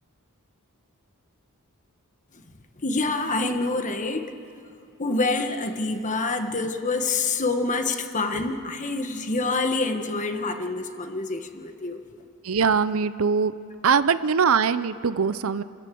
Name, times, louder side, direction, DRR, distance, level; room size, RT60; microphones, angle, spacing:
voice 1, 2.8-4.3 5.0-12.0, left 3 dB, 35° left, 6 dB, 1.4 m, -26 dB
voice 2, 12.4-13.5 13.8-15.6, right 6 dB, 65° right, 14 dB, 0.6 m, -22 dB
28.5 x 14.0 x 8.4 m, 2.6 s
head